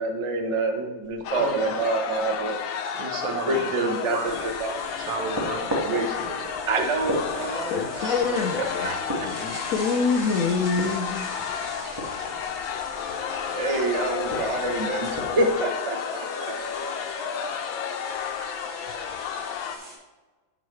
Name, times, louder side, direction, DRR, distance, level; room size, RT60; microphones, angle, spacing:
voice 1, 0.0-2.6 3.5-4.3 4.6-4.8 5.8-6.1 6.7-9.3 13.2-16.0, right 2 dB, 55° right, 3 dB, 0.3 m, -27 dB
sound 1, 1.1-1.2 1.5-1.6 2.1-20.0, equal, 35° right, 2.8 m, -44 dB
sound 2, 1.2-19.8, left 7 dB, 90° left, 1.5 m, -32 dB
voice 2, 1.4-1.8 2.9-4.4 5.0-6.5 6.8-6.9, right 4 dB, 80° right, 3 dB, 1.9 m, -33 dB
sound 3, 4.2-15.5, equal, 15° right, 1.4 m, -37 dB
voice 3, 7.7-9.0 9.2-11.3, left 4 dB, 70° left, 3 dB, 0.8 m, -26 dB
10.0 x 6.1 x 3.2 m, 1.2 s
omnidirectional pair, 2.1 m